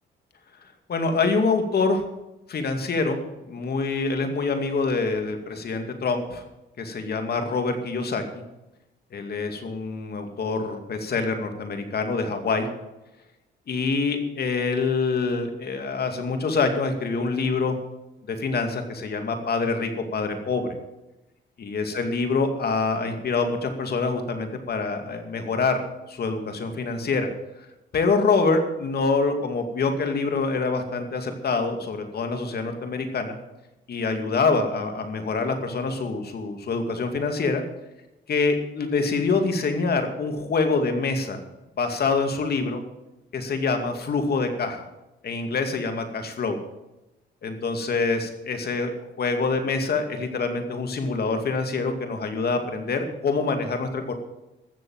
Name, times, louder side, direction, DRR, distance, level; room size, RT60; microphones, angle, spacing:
voice 1, 0.9-2.0 2.5-3.2 3.5-6.4 6.8-8.4 9.1-12.7 13.7-17.8 18.3-20.7 21.6-25.8 26.1-27.3 27.9-33.4 33.9-37.6 38.3-41.4 41.8-42.8 43.3-44.8 45.2-46.6 47.4-54.1, left 4 dB, 55° left, 5 dB, 2.4 m, -25 dB
15.0 x 7.1 x 8.9 m, 0.97 s
cardioid pair, 90°, 20 cm